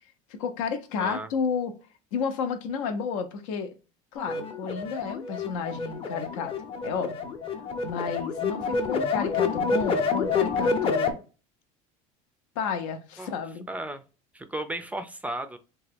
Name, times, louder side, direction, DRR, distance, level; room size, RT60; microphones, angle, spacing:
voice 1, 0.3-1.7 2.1-3.8 4.1-6.6 6.8-7.3 7.8-11.3 12.6-13.7, left 6 dB, 85° left, 0.6 m, -31 dB
voice 2, 1.0-1.3 13.2-13.4 13.7-14.0 14.3-15.6, right 1 dB, 10° right, 0.3 m, -34 dB
sound 1, 4.2-11.1, left 5 dB, 35° left, 0.6 m, -28 dB
2.9 x 2.2 x 3.3 m
supercardioid pair, 120°, 16 cm